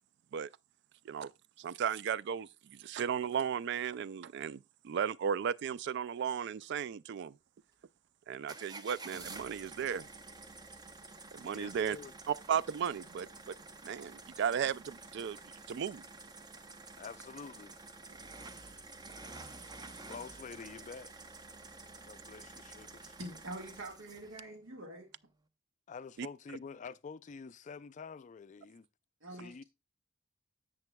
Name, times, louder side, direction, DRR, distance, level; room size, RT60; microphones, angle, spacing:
voice 1, 1.6-7.3 8.3-10.1 11.3-12.0 12.3-13.5 13.8-15.4 15.7-16.0 26.2-26.3, right 8 dB, 60° right, 0.3 m, -35 dB
sound 1, 8.5-24.4, right 3 dB, 20° right, 0.6 m, -50 dB
voice 2, 11.4-12.1 17.0-17.7 20.0-21.1 22.1-23.2 25.9-28.9 29.3-29.6, left 5 dB, 35° left, 0.4 m, -48 dB
voice 3, 23.2-25.1 29.2-29.6, right 1 dB, 75° right, 1.7 m, -45 dB
10.5 x 7.6 x 2.2 m
head